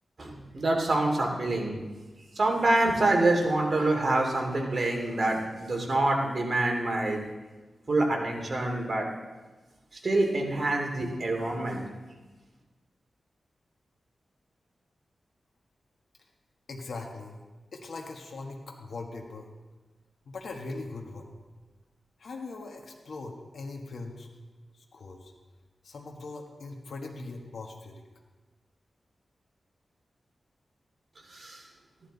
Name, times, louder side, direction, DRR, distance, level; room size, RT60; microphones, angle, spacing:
voice 1, 0.2-1.8 2.3-7.2 7.9-9.1 10.0-11.8 31.3-31.6, right 2 dB, 45° right, 1 dB, 2.6 m, -26 dB
voice 2, 16.7-17.3 17.7-19.5 20.3-21.3 22.2-24.3 24.7-25.3 25.8-28.0, left 3 dB, 75° left, 1 dB, 1.5 m, -40 dB
14.5 x 11.5 x 4.1 m, 1.2 s
wide cardioid pair, 80°, 0 cm